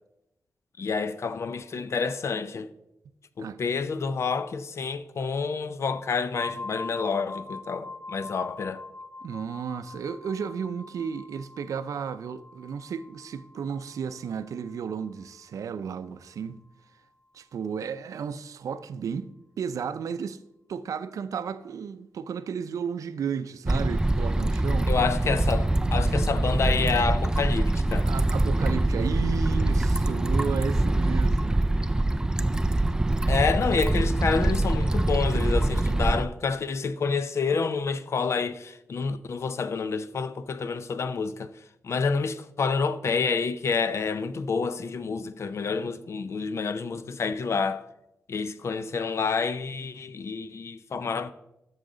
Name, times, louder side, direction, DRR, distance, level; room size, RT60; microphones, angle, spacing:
voice 1, 0.8-2.7 3.4-8.8 24.9-28.1 33.3-41.5 41.8-47.8 48.3-51.3, left 5 dB, 55° left, 0.5 m, -28 dB
sound 1, 6.3-16.0, left 3 dB, 35° left, 1.3 m, -43 dB
voice 2, 9.2-16.6 17.3-19.3 19.6-20.4 20.7-24.9 28.0-31.6, right 7 dB, 85° right, 0.5 m, -33 dB
sound 2, 23.7-36.2, right 1 dB, 15° right, 0.3 m, -24 dB
13.0 x 6.4 x 3.8 m
wide cardioid pair, 120°, 6 cm